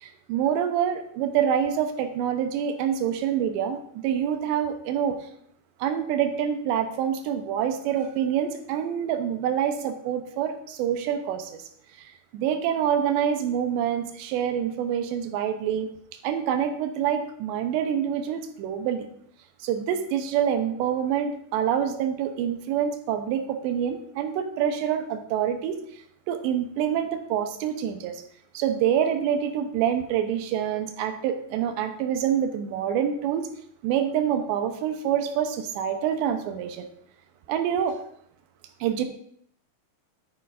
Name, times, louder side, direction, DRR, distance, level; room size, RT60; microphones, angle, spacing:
voice 1, 0.0-5.2 5.8-11.6 12.0-15.9 16.2-19.1 19.6-25.8 26.3-28.2 28.5-33.5 33.8-36.9 37.5-38.0 38.8-39.1, right 9 dB, 85° right, 7 dB, 3.0 m, -26 dB
11.0 x 9.6 x 2.5 m, 0.67 s
omnidirectional pair, 5.1 m